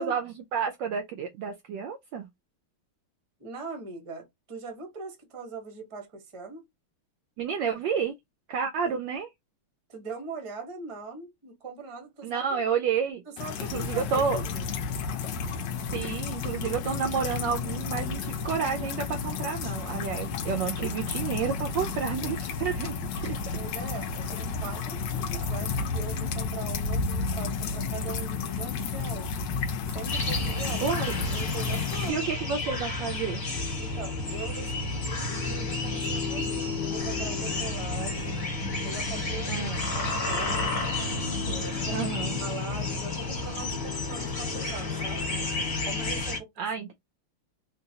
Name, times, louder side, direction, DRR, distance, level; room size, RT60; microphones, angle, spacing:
voice 1, 0.0-2.3 7.4-8.1 8.5-9.3 12.2-13.2 13.6-14.4 15.9-23.4 30.8-31.1 32.1-33.4 39.5-39.8 41.9-42.4 46.6-46.9, right 6 dB, 75° right, 1.0 m, -30 dB
voice 2, 3.4-6.7 8.8-9.0 9.9-12.6 13.3-14.0 14.3-14.7 22.2-22.3 23.5-29.4 29.9-30.9 31.3-32.3 33.8-38.4 38.8-40.8 41.5-42.1 42.4-45.3 45.8-46.5, right 4 dB, 30° right, 0.5 m, -41 dB
sound 1, 13.4-32.1, left 5 dB, 70° left, 1.1 m, -32 dB
sound 2, 30.1-46.4, left 3 dB, 45° left, 1.5 m, -31 dB
3.8 x 2.2 x 2.7 m
omnidirectional pair, 2.4 m